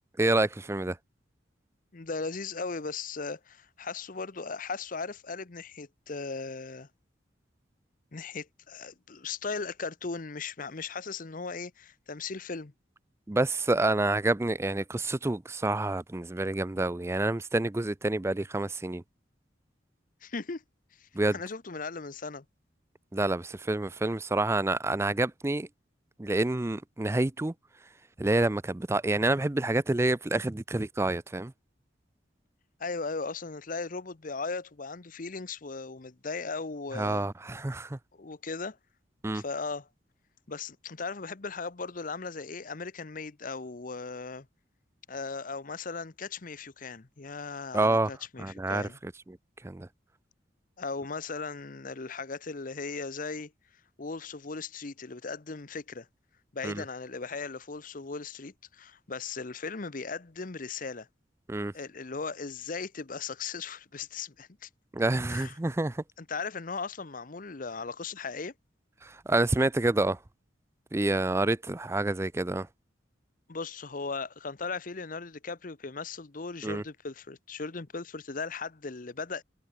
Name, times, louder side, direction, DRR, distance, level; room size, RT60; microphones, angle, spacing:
voice 1, 0.2-1.0 13.3-19.0 21.2-21.4 23.1-25.7 26.2-27.5 28.2-31.5 36.9-38.0 39.2-39.4 47.7-48.1 48.4-49.4 49.6-49.9 56.6-56.8 61.5-61.7 64.9-66.0 69.0-70.2 70.9-72.7 76.6-76.8, right 2 dB, 15° right, 0.4 m, -28 dB
voice 2, 1.9-6.9 8.1-12.7 20.2-20.6 21.0-22.4 32.8-37.3 38.1-38.8 39.3-39.9 40.5-44.5 45.1-49.0 50.8-53.5 54.0-56.1 56.5-61.1 61.7-64.7 65.3-65.5 66.2-68.5 73.5-79.4, left 4 dB, 45° left, 0.9 m, -37 dB
head